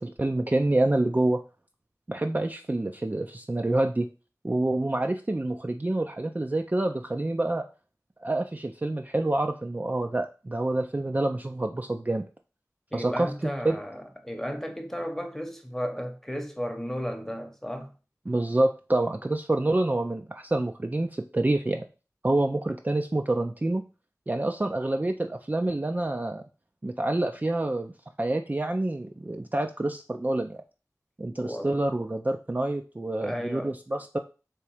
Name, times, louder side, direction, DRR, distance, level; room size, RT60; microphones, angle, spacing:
voice 1, 0.0-1.4 2.1-4.1 4.4-7.7 8.2-12.3 12.9-13.8 18.3-21.8 22.2-23.8 24.3-26.4 26.8-27.9 28.2-30.6 31.2-34.2, right 2 dB, 30° right, 0.3 m, -27 dB
voice 2, 12.9-17.9 31.4-31.9 33.2-33.7, equal, 5° left, 0.8 m, -34 dB
3.3 x 3.0 x 4.7 m
wide cardioid pair, 45°, 6 cm